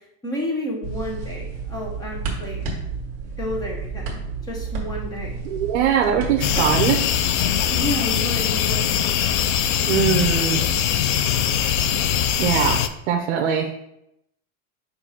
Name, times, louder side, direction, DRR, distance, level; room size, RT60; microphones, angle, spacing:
voice 1, 0.2-2.7 3.4-5.4 7.7-9.0, equal, 10° left, -1 dB, 0.8 m, -31 dB
sound 1, 0.8-6.9, right 4 dB, 35° right, 1.7 m, -31 dB
voice 2, 5.4-7.0 9.9-10.6 12.4-13.7, right 8 dB, 60° right, 2 dB, 0.8 m, -21 dB
sound 2, 6.4-12.9, left 9 dB, 60° left, 0.5 m, -21 dB
6.6 x 2.6 x 5.6 m, 0.81 s
supercardioid pair, 175°, 40 cm